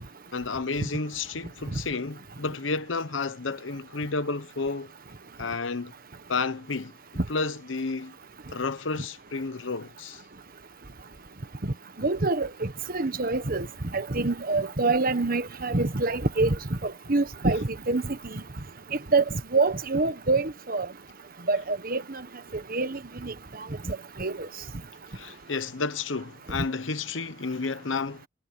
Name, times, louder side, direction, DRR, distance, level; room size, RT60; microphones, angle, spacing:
voice 1, 0.3-4.9 5.4-5.9 6.3-6.9 7.3-8.2 8.5-10.2 25.1-28.3, left 4 dB, 90° left, 1.1 m, -31 dB
voice 2, 12.0-13.7 13.9-16.5 16.8-18.4 19.1-19.2 19.5-20.9 21.5-22.2 22.7-23.3 23.9-24.5, right 3 dB, 50° right, 1.4 m, -26 dB
head